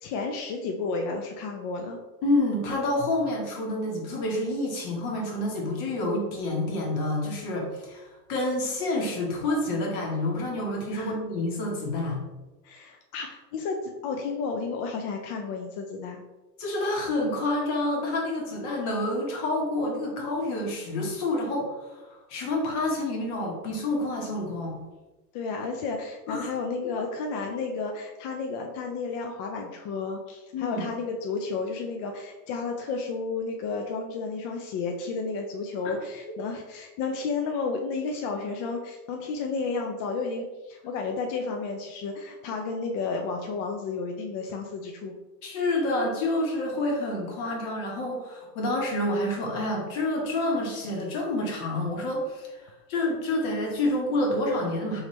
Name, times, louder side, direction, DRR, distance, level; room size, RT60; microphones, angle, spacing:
voice 1, 0.0-2.0 10.9-11.1 12.6-16.2 25.3-45.1, left 4 dB, 40° left, 2 dB, 0.4 m, -32 dB
voice 2, 2.2-8.0 8.3-12.2 16.6-24.8 26.3-26.5 30.5-30.8 35.8-35.9 45.4-55.0, left 1 dB, 60° left, -1 dB, 1.4 m, -28 dB
3.5 x 3.0 x 3.1 m, 1.1 s
supercardioid pair, 115°, 49 cm